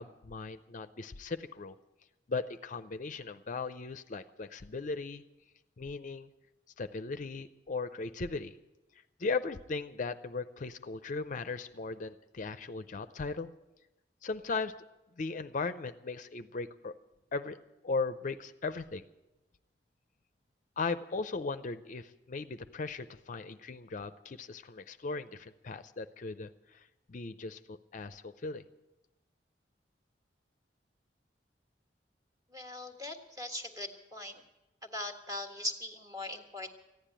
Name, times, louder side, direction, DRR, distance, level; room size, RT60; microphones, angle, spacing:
voice 1, 0.0-1.8 2.3-5.2 5.8-6.3 6.8-8.6 9.2-13.5 14.2-14.7 15.2-16.9 17.3-17.6 17.8-19.0 20.8-28.6, left 4 dB, 45° left, 11 dB, 0.5 m, -37 dB
voice 2, 32.5-34.4 34.8-36.7, left 1 dB, 20° right, 2 dB, 1.6 m, -40 dB
14.5 x 10.0 x 8.8 m, 1.0 s
head